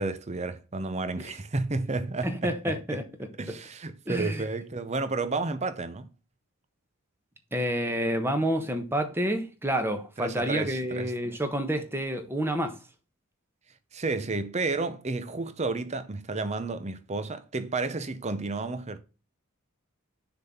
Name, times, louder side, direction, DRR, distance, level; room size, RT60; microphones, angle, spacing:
voice 1, 0.0-3.0 3.4-6.1 10.2-11.1 13.9-19.0, right 3 dB, 30° right, 0.7 m, -31 dB
voice 2, 2.2-3.0 4.1-4.4 7.5-12.8, equal, 10° right, 1.1 m, -29 dB
6.7 x 4.0 x 5.8 m
head